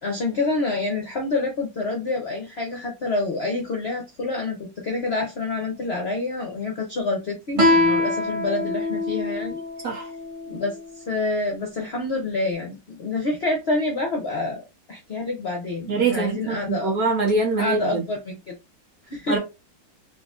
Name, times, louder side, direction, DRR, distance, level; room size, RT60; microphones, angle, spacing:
voice 1, 0.0-9.6 9.9-10.0 10.5-10.8 11.1-14.6 14.9-16.9 17.6-18.5 19.1-19.4, left 2 dB, 55° left, 0.7 m, -27 dB
Guitar, 7.6-10.8, left 1 dB, 25° right, 0.7 m, -23 dB
voice 2, 15.9-18.0 19.3-19.4, right 3 dB, 55° right, 1.4 m, -23 dB
3.8 x 2.8 x 2.4 m
omnidirectional pair, 1.9 m